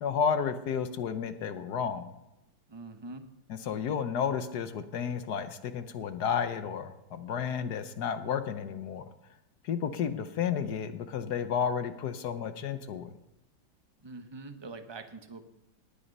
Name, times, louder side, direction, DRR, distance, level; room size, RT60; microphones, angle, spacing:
voice 1, 0.0-2.1 3.5-9.1 9.6-13.1, left 7 dB, 65° left, 10 dB, 1.3 m, -32 dB
voice 2, 2.7-3.2 14.0-15.5, right 3 dB, 20° right, 7 dB, 0.8 m, -44 dB
19.0 x 9.1 x 5.4 m, 0.90 s
omnidirectional pair, 2.0 m